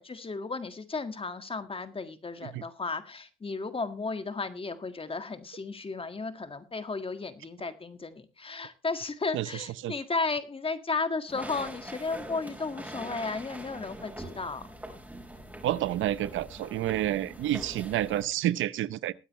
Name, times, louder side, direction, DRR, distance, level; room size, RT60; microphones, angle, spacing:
voice 1, 0.0-14.6, left 4 dB, 25° left, 1.7 m, -34 dB
voice 2, 9.3-9.9 15.6-19.1, right 13 dB, 80° right, 0.7 m, -29 dB
sound 1, 11.3-18.2, right 1 dB, 10° right, 4.8 m, -43 dB
21.5 x 9.3 x 3.1 m
cardioid pair, 90°, 20 cm